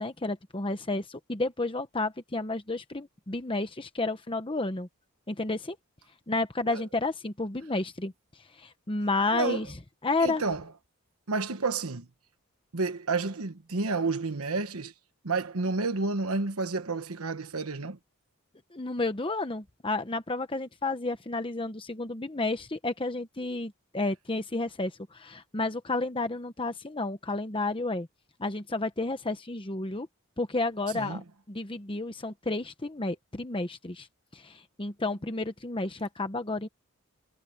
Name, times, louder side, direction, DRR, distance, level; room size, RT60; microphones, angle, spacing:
voice 1, 0.0-4.9 5.3-5.8 6.3-9.7 10.0-10.4 18.7-28.1 28.4-30.1 30.4-34.1 34.3-36.7, left 2 dB, 25° left, 0.9 m, -31 dB
voice 2, 9.3-9.7 10.2-10.6 11.3-12.1 12.7-14.9 15.2-18.0 30.9-31.2, right 3 dB, 80° right, 1.2 m, -30 dB
head